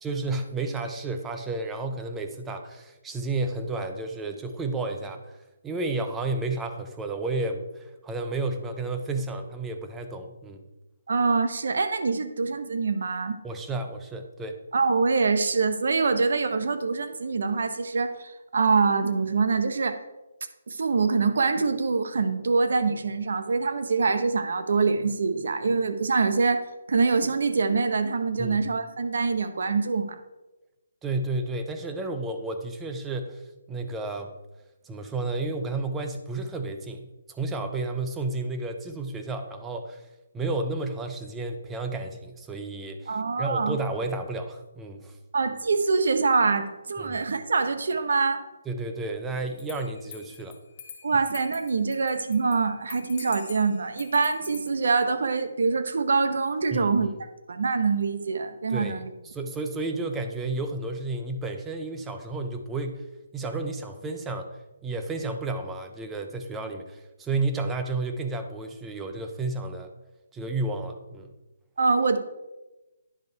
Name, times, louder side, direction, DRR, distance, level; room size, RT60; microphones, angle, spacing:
voice 1, 0.0-5.4 5.6-10.6 13.4-14.6 28.4-28.6 31.0-33.4 33.7-34.3 34.8-40.1 40.3-45.2 47.0-47.2 48.7-50.6 51.1-51.2 56.7-57.2 58.7-63.0 63.3-69.9 70.3-71.3, right 2 dB, 10° right, 6 dB, 0.7 m, -32 dB
voice 2, 11.1-13.4 14.7-20.0 20.7-30.2 43.1-43.8 45.3-48.4 51.0-57.1 57.5-59.1 71.8-72.2, right 4 dB, 70° right, 9 dB, 0.9 m, -25 dB
sound 1, 49.6-52.6 52.9-54.7, left 7 dB, 35° left, 1.4 m, -45 dB
10.0 x 5.2 x 4.5 m, 1.0 s
hypercardioid pair, 160°, 0 cm